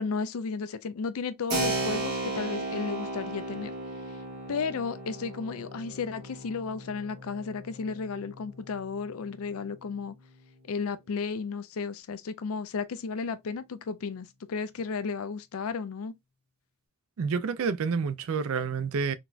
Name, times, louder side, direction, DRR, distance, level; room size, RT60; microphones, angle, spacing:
voice 1, 0.0-3.7 4.5-10.1 10.7-16.1, left 5 dB, 75° left, 0.4 m, -33 dB
Keyboard (musical), 1.5-9.9, right 2 dB, 50° right, 1.8 m, -36 dB
voice 2, 17.2-19.1, right 5 dB, 70° right, 0.4 m, -29 dB
3.9 x 2.3 x 2.4 m
head